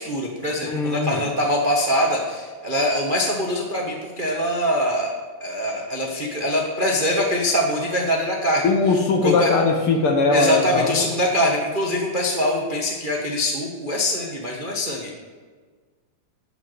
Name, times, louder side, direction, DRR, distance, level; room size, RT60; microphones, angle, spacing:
voice 1, 0.0-5.1 5.4-8.7 9.2-9.6 10.3-15.1, equal, 50° right, -1 dB, 0.5 m, -23 dB
voice 2, 0.6-1.2 8.6-11.1, left 4 dB, 60° left, 3 dB, 1.5 m, -20 dB
12.5 x 6.0 x 7.6 m, 1.5 s
omnidirectional pair, 3.4 m